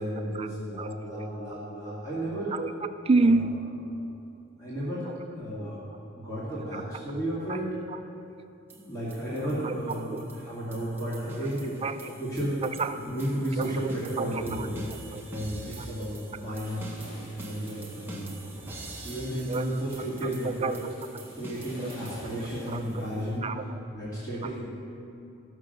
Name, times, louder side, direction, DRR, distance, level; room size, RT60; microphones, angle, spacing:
voice 1, 0.0-2.5 3.3-3.5 4.6-5.1 5.3-5.9 6.2-7.7 8.7-11.8 12.2-12.6 13.1-14.9 15.3-16.9 17.3-18.5 19.0-20.8 21.4-23.5 23.9-24.7, right 1 dB, 15° left, -10 dB, 2.1 m, -33 dB
voice 2, 0.8-1.2 2.5-3.6 5.1-5.2 5.6-5.7 6.7-6.8 7.5-7.6 9.6-9.7 10.0-10.2 11.8-12.1 12.6-13.0 13.6-13.9 14.2-14.7 15.1-15.2 19.5-19.7 20.2-20.3 20.6-20.7 21.8-21.9 22.7-23.1 23.4-23.8 24.4-24.6, right 3 dB, 30° right, 8 dB, 0.3 m, -29 dB
sound 1, 8.7-23.2, right 1 dB, 10° right, 1.0 m, -46 dB
sound 2, 16.6-23.2, equal, 90° left, 2.2 m, -48 dB
15.0 x 6.1 x 6.6 m, 2.8 s
head